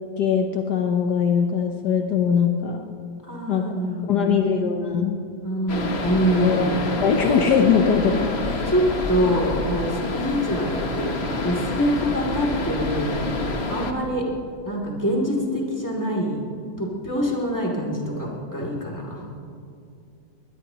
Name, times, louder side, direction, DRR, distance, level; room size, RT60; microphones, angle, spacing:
voice 1, 0.2-2.8 3.5-3.6 4.1-5.2 6.4-6.7 7.0-8.7, left 7 dB, 70° left, 3 dB, 1.4 m, -21 dB
voice 2, 3.2-4.5 5.4-6.9 8.7-13.2 13.7-14.3 14.6-16.4 16.8-19.3, equal, 10° left, -3 dB, 2.7 m, -25 dB
sound 1, 5.7-13.9, left 2 dB, 40° left, 1.4 m, -27 dB
22.0 x 20.0 x 3.0 m, 2.4 s
omnidirectional pair, 1.9 m